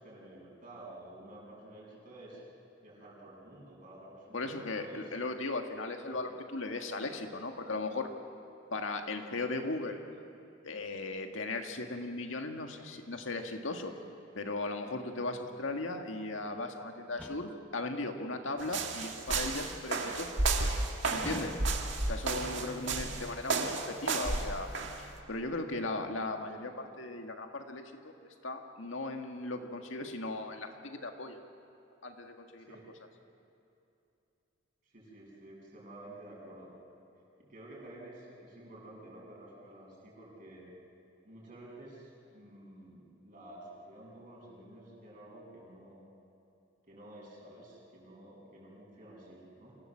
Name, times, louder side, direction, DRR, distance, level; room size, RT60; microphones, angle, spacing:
voice 1, 0.0-2.4 2.8-5.0 6.1-6.2 21.7-21.9 22.5-23.0 32.7-32.8 34.9-36.7 37.4-40.6 41.2-46.0 46.9-49.8, right 1 dB, 45° right, -5 dB, 7.3 m, -51 dB
voice 2, 4.3-8.1 8.7-10.0 10.6-13.9 14.4-20.3 21.1-21.6 22.1-24.7 25.0-28.1 28.4-31.4 32.0-32.7, left 2 dB, 90° left, 4 dB, 1.9 m, -37 dB
sound 1, 17.2-17.7 21.2-22.0, left 1 dB, 10° left, 0.8 m, -44 dB
sound 2, 18.6-25.0, right 3 dB, 70° right, 1.9 m, -32 dB
27.5 x 17.0 x 7.4 m, 2.8 s
head